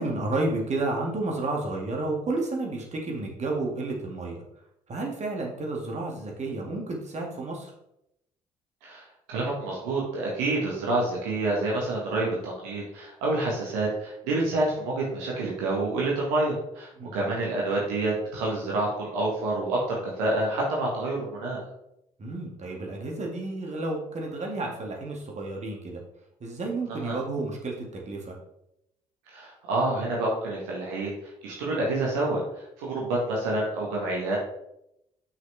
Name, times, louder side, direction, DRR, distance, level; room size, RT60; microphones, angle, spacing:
voice 1, 0.0-4.4 4.9-7.7 17.0-17.1 22.2-26.0 26.4-28.4, right 2 dB, 40° right, 0 dB, 2.2 m, -31 dB
voice 2, 8.8-21.7 26.9-27.2 29.3-34.4, right 2 dB, 70° right, -3 dB, 1.6 m, -28 dB
8.4 x 6.2 x 3.4 m, 0.82 s
figure-of-eight pair, 45°, 18 cm